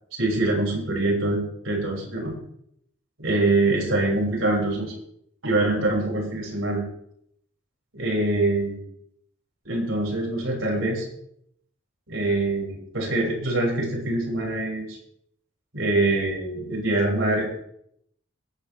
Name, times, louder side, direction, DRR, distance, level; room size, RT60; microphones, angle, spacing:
voice 1, 0.2-2.3 3.2-4.9 5.4-6.8 7.9-8.8 9.7-11.1 12.1-15.0 15.7-17.4, right 2 dB, 85° right, -2 dB, 5.9 m, -24 dB
22.0 x 9.9 x 3.4 m, 0.72 s
head